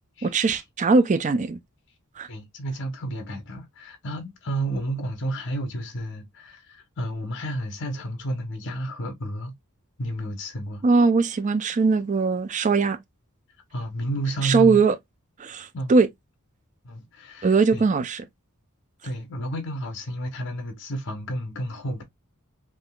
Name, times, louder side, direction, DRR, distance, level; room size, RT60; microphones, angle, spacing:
voice 1, 0.2-1.6 2.2-2.3 10.8-13.0 14.4-15.0 15.4-16.1 17.4-18.2, right 4 dB, 35° right, 0.4 m, -20 dB
voice 2, 2.3-9.5 10.0-10.8 13.7-14.8 15.7-15.9 16.8-17.9 19.0-22.0, right 1 dB, 55° left, 0.9 m, -31 dB
3.6 x 2.7 x 2.2 m
head